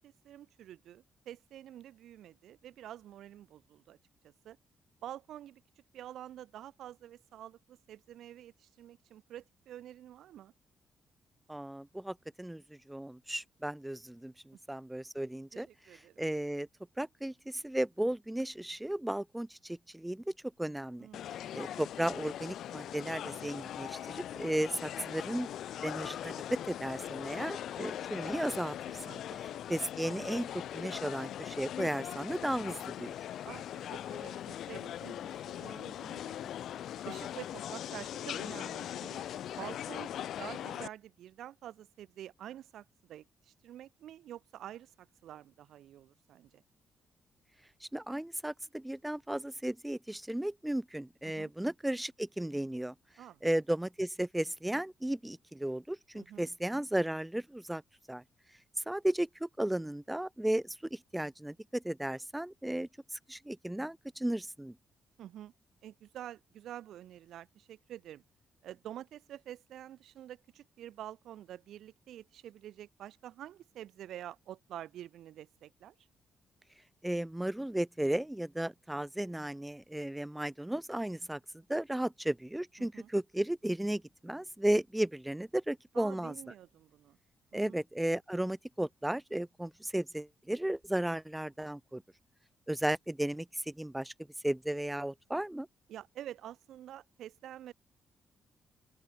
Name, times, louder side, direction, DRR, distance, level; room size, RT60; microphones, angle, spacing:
voice 1, 0.0-4.0 4.2-4.6 5.0-5.6 5.9-10.5 15.5-16.2 21.0-21.4 29.0-29.4 33.4-36.5 37.0-39.3 39.6-46.6 51.2-51.5 53.2-53.4 56.1-56.5 65.2-65.5 65.8-68.2 68.6-75.9 82.8-83.1 85.9-87.2 87.5-87.8 95.9-97.7, right 11 dB, 80° right, 3.7 m, -48 dB
voice 2, 11.5-12.6 12.9-15.7 15.9-16.7 17.0-20.2 20.6-21.1 21.5-25.5 25.8-26.4 26.7-29.0 29.7-33.1 47.8-52.9 53.4-57.8 58.1-58.2 58.9-64.7 77.0-81.4 81.7-86.4 87.5-92.0 92.7-94.1 94.4-95.7, right 1 dB, 5° right, 0.6 m, -35 dB
sound 1, 21.1-40.9, left 11 dB, 75° left, 1.1 m, -40 dB
open air
cardioid pair, 120°, 0 cm